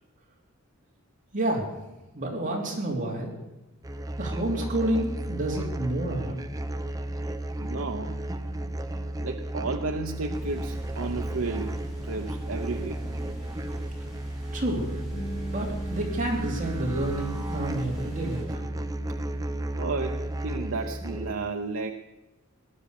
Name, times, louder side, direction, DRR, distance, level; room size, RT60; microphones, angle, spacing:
voice 1, 1.3-1.6 2.1-3.3 4.2-6.4 14.5-14.9 15.5-18.7, right 1 dB, 40° right, -1 dB, 3.3 m, -29 dB
sound 1, 3.8-21.3, right 1 dB, 15° right, 0.7 m, -33 dB
voice 2, 7.6-8.2 9.2-13.0 19.8-21.9, right 3 dB, 70° right, 5 dB, 0.7 m, -33 dB
sound 2, 10.3-18.4, equal, ahead, 6.2 m, -45 dB
Bass guitar, 15.1-19.9 20.2-21.4, right 1 dB, 55° left, 2.1 m, -43 dB
18.5 x 10.5 x 6.7 m, 1.0 s
head